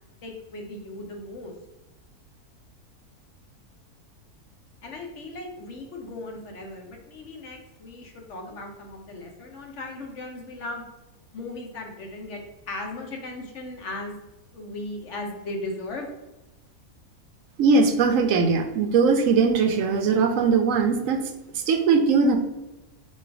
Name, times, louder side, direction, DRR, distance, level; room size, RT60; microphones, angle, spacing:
voice 1, 0.2-1.5 4.8-10.8 11.3-12.4 12.7-14.2 14.5-16.1, left 2 dB, 55° left, 1 dB, 1.1 m, -37 dB
voice 2, 17.6-21.2 21.5-22.4, right 4 dB, 70° right, 5 dB, 0.9 m, -20 dB
4.3 x 2.5 x 4.7 m, 1.0 s
omnidirectional pair, 1.6 m